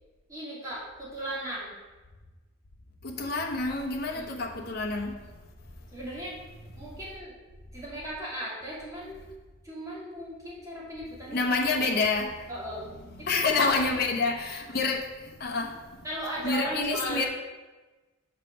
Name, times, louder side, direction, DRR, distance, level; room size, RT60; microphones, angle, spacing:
voice 1, 0.3-1.7 4.1-4.4 5.9-6.4 6.8-7.3 7.7-9.2 9.6-11.8 12.5-12.9 13.2-13.7 16.0-17.3, right 1 dB, 15° right, -7 dB, 2.2 m, -37 dB
voice 2, 3.0-5.1 11.3-12.5 13.2-15.9 16.4-17.3, left 3 dB, 50° left, 1 dB, 0.8 m, -28 dB
5.7 x 5.1 x 5.7 m, 1.2 s
head